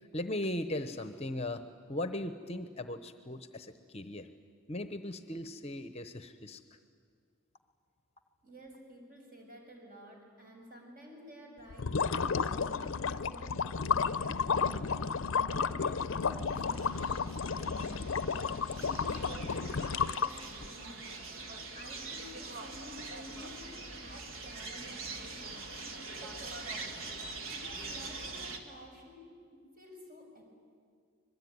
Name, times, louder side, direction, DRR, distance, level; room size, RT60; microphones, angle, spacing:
voice 1, 0.1-4.3 4.7-6.8, left 1 dB, 30° left, 10 dB, 0.9 m, -38 dB
voice 2, 8.4-23.7 23.9-29.3 29.5-30.4, equal, 40° right, 1 dB, 6.2 m, -52 dB
sound 1, 11.7-20.7, left 5 dB, 60° left, 0.6 m, -32 dB
sound 2, 16.5-28.6, right 3 dB, 60° right, 2.1 m, -44 dB
25.5 x 22.0 x 9.5 m, 2.1 s
head